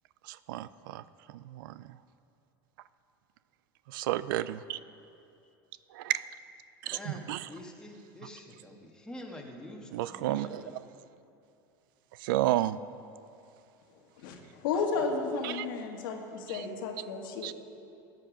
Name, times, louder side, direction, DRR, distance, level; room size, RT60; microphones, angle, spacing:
voice 1, 0.3-1.0 1.3-1.9 3.9-4.8 5.9-6.2 6.8-7.0 7.3-7.4 9.9-10.6 12.2-12.8 15.4-15.7 16.5-16.6 17.4-17.5, right 14 dB, 80° right, 16 dB, 0.4 m, -31 dB
voice 2, 6.9-10.7, left 1 dB, 5° left, 0 dB, 1.6 m, -46 dB
voice 3, 14.2-17.5, left 4 dB, 80° left, 3 dB, 1.5 m, -33 dB
14.0 x 9.2 x 5.2 m, 2.6 s
supercardioid pair, 115°, 11 cm